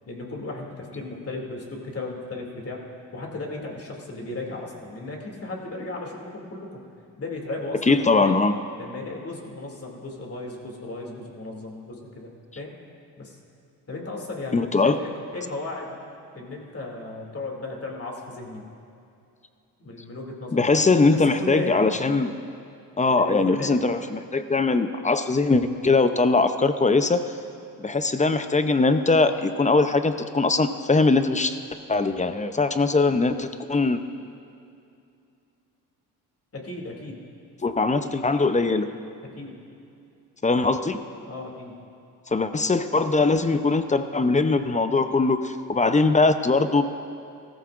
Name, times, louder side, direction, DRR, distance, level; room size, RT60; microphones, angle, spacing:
voice 1, 0.1-2.8 3.1-6.8 7.2-8.4 8.8-12.7 13.2-13.4 13.9-16.0 16.3-18.6 19.8-20.7 21.1-21.9 23.1-23.8 36.5-37.2 39.3-39.6 41.2-41.8, left 2 dB, 35° left, 0 dB, 2.6 m, -35 dB
voice 2, 7.9-8.5 14.5-15.0 20.5-22.3 23.0-27.2 27.8-31.6 31.9-34.0 37.6-38.9 40.4-41.0 42.3-46.8, left 3 dB, 20° left, 9 dB, 0.6 m, -21 dB
16.5 x 14.0 x 2.5 m, 2.6 s
supercardioid pair, 70°, 39 cm